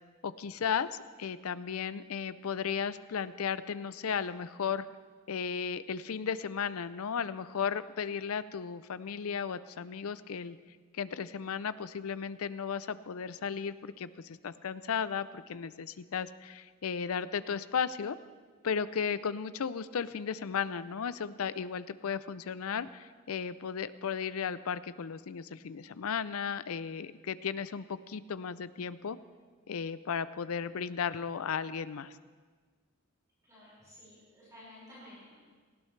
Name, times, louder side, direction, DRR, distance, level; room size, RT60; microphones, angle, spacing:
voice 1, 0.2-0.9 1.2-4.9 5.3-10.6 10.9-18.2 18.6-29.2 29.7-32.1, left 6 dB, 75° left, 15 dB, 0.5 m, -35 dB
voice 2, 33.5-35.3, left 1 dB, 15° right, -10 dB, 5.4 m, -53 dB
18.5 x 15.5 x 3.3 m, 1.5 s
head